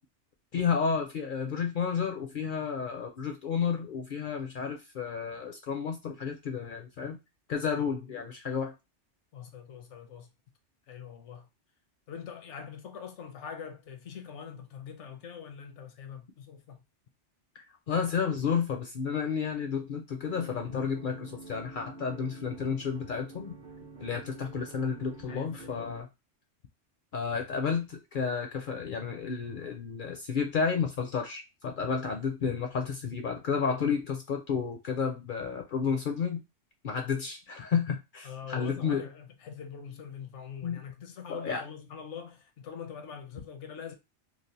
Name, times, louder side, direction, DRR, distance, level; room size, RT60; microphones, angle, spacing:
voice 1, 0.5-7.2 7.5-8.7 17.6-23.5 24.0-26.1 27.1-36.4 36.8-39.1 40.6-40.8 41.3-41.6, left 6 dB, 60° left, 0.6 m, -31 dB
voice 2, 9.3-10.3 10.9-11.5 12.1-16.8 25.3-26.0 38.2-43.9, left 7 dB, 75° left, 0.9 m, -43 dB
sound 1, 20.2-26.0, right 3 dB, 50° right, 0.7 m, -48 dB
3.2 x 2.4 x 2.6 m
omnidirectional pair, 1.2 m